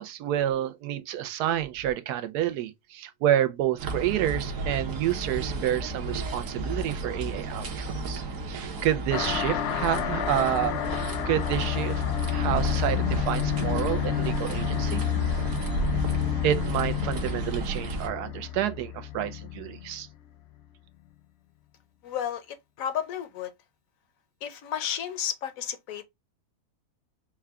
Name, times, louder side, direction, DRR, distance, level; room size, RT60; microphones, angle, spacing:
voice 1, 0.0-10.7 11.3-12.0 12.3-15.0 16.4-20.1, right 11 dB, 90° right, 1.1 m, -29 dB
sound 1, 3.8-18.1, right 3 dB, 60° right, 1.2 m, -33 dB
sound 2, 9.1-20.1, left 11 dB, 90° left, 0.5 m, -30 dB
voice 2, 22.0-23.5 24.4-26.0, left 9 dB, 70° left, 1.0 m, -32 dB
4.7 x 2.2 x 3.4 m
omnidirectional pair, 1.6 m